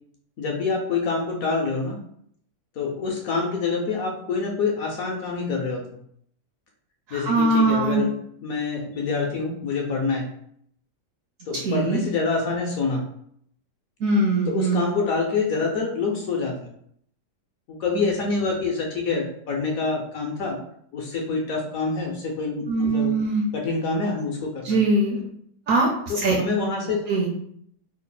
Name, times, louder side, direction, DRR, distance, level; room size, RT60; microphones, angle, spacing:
voice 1, 0.4-2.0 2.8-5.8 7.1-10.2 11.5-13.0 14.5-16.6 17.8-20.6 20.9-23.2 23.5-24.8 26.1-27.0, left 4 dB, 70° left, 0 dB, 0.9 m, -26 dB
voice 2, 7.1-8.0 11.6-12.0 14.0-14.9 22.7-23.4 24.6-25.2 25.7-25.9 26.1-26.4 27.1-27.3, right 3 dB, 65° right, -1 dB, 0.8 m, -21 dB
3.2 x 2.0 x 3.8 m, 0.67 s
omnidirectional pair, 1.8 m